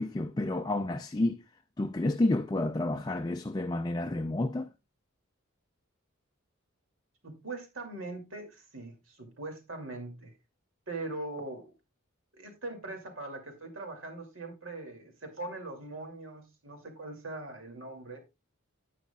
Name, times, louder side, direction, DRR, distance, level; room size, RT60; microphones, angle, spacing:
voice 1, 0.0-1.4 1.8-4.7, left 2 dB, 20° left, 0.4 m, -30 dB
voice 2, 7.2-10.3 10.9-11.7 12.3-18.2, right 2 dB, 65° right, 2.5 m, -41 dB
10.5 x 9.3 x 2.3 m
head